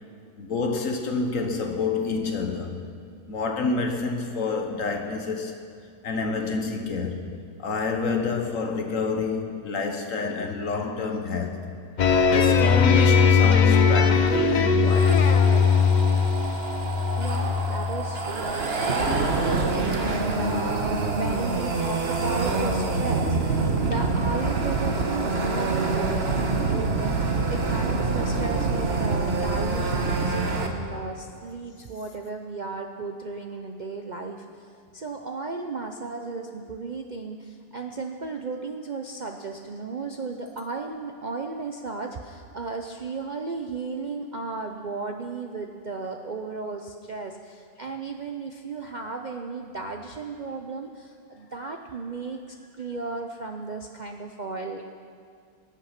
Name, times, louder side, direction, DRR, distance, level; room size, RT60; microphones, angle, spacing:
voice 1, 0.4-2.8 3.3-5.6 6.0-7.3 7.6-11.7 12.3-15.3, left 4 dB, 55° left, 1.4 m, -28 dB
sound 1, 12.0-18.2, left 6 dB, 85° left, 0.4 m, -20 dB
sound 2, 14.9-30.7, right 3 dB, 40° right, 1.3 m, -26 dB
voice 2, 17.2-19.2 19.7-34.4 34.9-52.4 52.8-54.8, right 4 dB, 65° right, 0.4 m, -35 dB
20.5 x 8.2 x 5.9 m
omnidirectional pair, 1.7 m